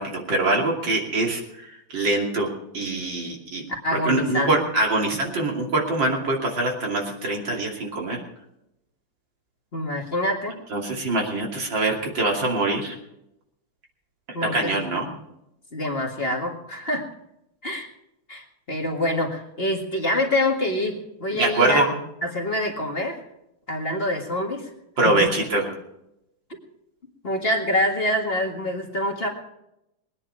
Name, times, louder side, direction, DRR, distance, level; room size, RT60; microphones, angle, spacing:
voice 1, 0.0-2.5 2.7-3.6 3.9-8.2 10.7-13.0 14.5-15.1 21.3-21.8 25.0-25.7, right 2 dB, 75° right, 0 dB, 3.5 m, -24 dB
voice 2, 3.8-4.7 9.7-10.6 14.3-15.2 15.7-17.1 17.6-17.9 18.3-23.2 23.7-24.7 25.0-25.3 27.2-29.3, left 1 dB, 30° left, 1 dB, 2.0 m, -26 dB
21.0 x 9.8 x 4.9 m, 0.83 s
omnidirectional pair, 2.1 m